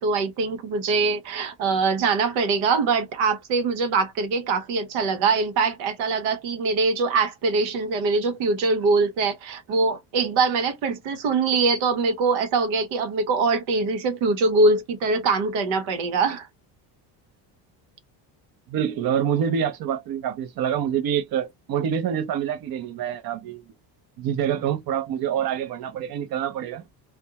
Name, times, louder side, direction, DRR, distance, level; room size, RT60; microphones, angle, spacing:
voice 1, 0.0-16.5, right 4 dB, 85° right, 1.0 m, -23 dB
voice 2, 18.7-23.6 24.2-26.8, right 9 dB, 50° right, 0.7 m, -26 dB
2.5 x 2.2 x 2.8 m
cardioid pair, 130°, 45 cm